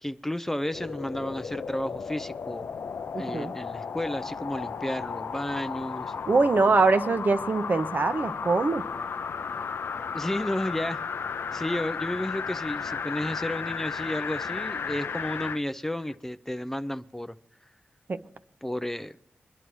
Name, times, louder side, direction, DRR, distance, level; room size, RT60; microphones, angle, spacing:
voice 1, 0.0-2.7 3.2-6.1 10.1-11.0 11.5-17.4 17.6-17.7 18.6-19.2, left 1 dB, 10° left, 11 dB, 0.5 m, -32 dB
sound 1, 0.6-15.6 16.1-16.2, left 6 dB, 70° left, 0.4 m, -34 dB
voice 2, 3.1-3.5 6.3-8.8 18.1-18.2, right 3 dB, 50° right, 9 dB, 0.8 m, -23 dB
23.5 x 11.0 x 3.1 m, 0.65 s
cardioid pair, 60°, 4 cm